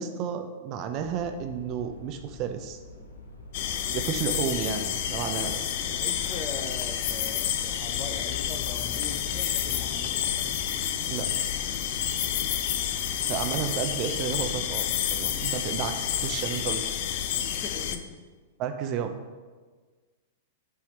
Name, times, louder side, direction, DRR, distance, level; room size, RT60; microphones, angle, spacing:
voice 1, 0.0-2.8 3.9-5.6 11.1-11.4 13.3-16.8 18.6-19.1, right 7 dB, 40° right, 7 dB, 0.5 m, -32 dB
sound 1, 0.9-17.3, left 2 dB, 90° left, 0.9 m, -46 dB
voice 2, 3.0-3.3 3.8-4.1 5.8-10.5 12.0-12.5 17.3-18.1, left 4 dB, 35° left, 5 dB, 0.8 m, -41 dB
sound 2, 3.5-18.0, left 10 dB, 55° left, 0.5 m, -29 dB
7.3 x 3.5 x 4.5 m, 1.4 s
hypercardioid pair, 110°, 0 cm